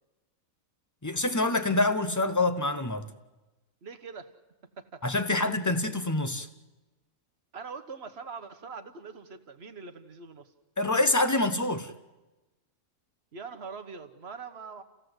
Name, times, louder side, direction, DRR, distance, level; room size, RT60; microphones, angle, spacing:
voice 1, 1.0-3.1 5.0-6.5 10.8-11.9, left 2 dB, 15° left, 0.7 m, -26 dB
voice 2, 3.8-4.3 4.8-5.0 7.5-10.5 13.3-14.8, right 5 dB, 45° right, 1.4 m, -43 dB
28.5 x 16.0 x 8.0 m
omnidirectional pair, 1.7 m